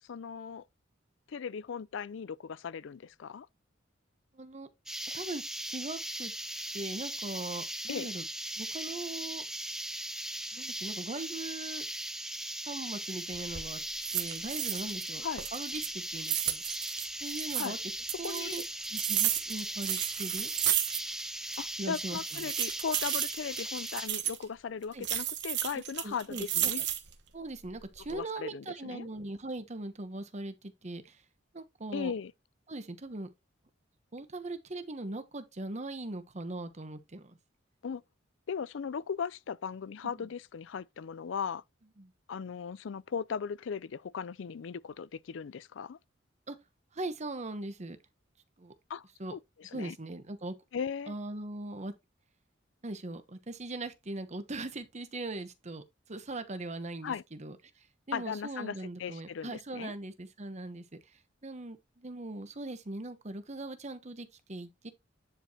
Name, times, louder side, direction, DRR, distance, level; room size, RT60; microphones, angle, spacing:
voice 1, 0.1-0.7 1.3-3.5 7.9-8.1 15.2-15.5 17.6-17.8 18.2-18.6 21.6-26.8 28.1-29.1 31.9-32.3 37.8-38.0 38.5-41.6 42.3-46.0 48.9-50.0 50.7-51.1 57.0-57.2 58.1-59.9, left 6 dB, 70° left, 0.4 m, -38 dB
voice 2, 4.3-4.7 5.1-6.3 6.7-8.2 8.6-9.4 10.5-11.9 12.7-13.8 14.1-15.2 15.5-16.6 17.2-17.8 18.2-18.6 18.9-20.5 21.8-22.5 24.9-25.1 25.7-26.7 27.3-31.2 31.5-32.1 32.7-33.3 34.1-37.4 40.0-40.3 42.0-42.1 46.5-46.6 46.9-48.0 48.6-48.7 49.2-49.4 49.7-50.5 51.1-51.9 52.8-64.9, right 2 dB, 35° right, 1.0 m, -40 dB
sound 1, 4.9-24.1, right 1 dB, 5° right, 0.7 m, -39 dB
sound 2, 13.3-13.7 14.0-15.1 15.4-17.7 18.1-21.3 21.5-21.6 22.2-24.4 25.0-27.2 27.7-28.2, right 11 dB, 60° right, 1.2 m, -33 dB
10.0 x 4.6 x 2.9 m
head